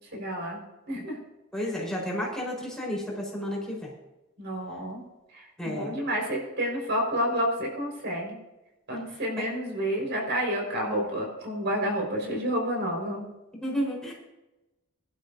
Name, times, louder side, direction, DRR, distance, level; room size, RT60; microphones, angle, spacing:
voice 1, 0.1-0.6 0.9-1.2 1.6-1.7 4.4-5.0 5.3-8.4 8.9-13.3, equal, 55° right, 0 dB, 5.0 m, -29 dB
voice 2, 1.5-3.9 5.6-5.9 9.4-9.5 13.5-14.1, equal, 5° left, -4 dB, 4.4 m, -31 dB
22.5 x 12.0 x 2.7 m, 1.0 s
head